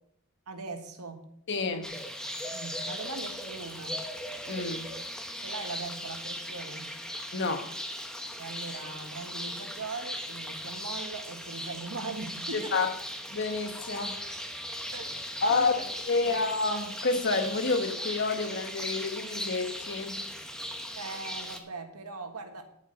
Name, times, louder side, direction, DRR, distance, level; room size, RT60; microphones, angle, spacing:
voice 1, 0.5-1.3 2.5-4.0 5.4-7.0 8.4-12.9 14.9-15.1 15.5-15.9 16.2-16.4 20.9-22.6, right 3 dB, 85° right, 1.6 m, -40 dB
voice 2, 1.5-1.9 4.5-4.9 7.3-7.7 12.5-12.9 13.3-14.2 15.4-15.7 16.1-20.3, left 3 dB, 55° left, 1.3 m, -29 dB
sound 1, 1.8-21.6, equal, 5° left, 1.0 m, -38 dB
10.5 x 7.7 x 5.4 m
head